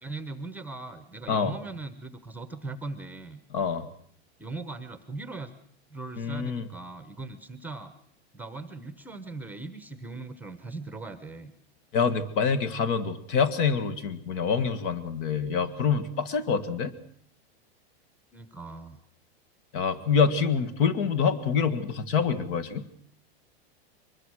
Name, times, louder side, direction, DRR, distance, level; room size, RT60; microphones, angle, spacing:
voice 1, 0.0-3.4 4.4-5.5 5.9-7.9 8.3-11.5 18.3-19.0, right 3 dB, 5° right, 10 dB, 1.0 m, -39 dB
voice 2, 3.5-3.9 6.2-6.6 11.9-16.9 19.7-22.8, left 6 dB, 55° left, 13 dB, 1.9 m, -26 dB
23.5 x 20.5 x 6.4 m, 0.62 s
supercardioid pair, 150°, 32 cm